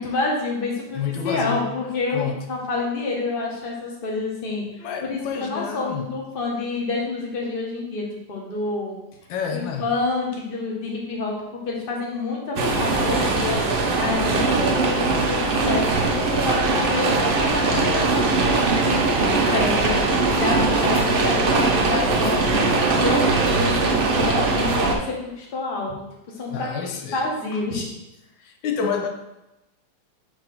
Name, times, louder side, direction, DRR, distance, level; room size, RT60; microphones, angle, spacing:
voice 1, 0.0-4.6 5.0-8.9 9.5-11.3 11.6-19.0 19.5-26.0 26.4-26.7 27.0-27.9, left 3 dB, 35° left, -2 dB, 1.2 m, -28 dB
voice 2, 0.9-1.7 2.1-2.4 4.8-6.1 9.3-9.9 17.7-18.0 25.9-26.0 26.5-27.2 27.5-27.6 28.4-29.1, left 6 dB, 90° left, 4 dB, 1.4 m, -29 dB
sound 1, 12.6-25.0, right 3 dB, 65° right, 0.5 m, -21 dB
4.7 x 3.8 x 5.4 m, 0.92 s
omnidirectional pair, 2.0 m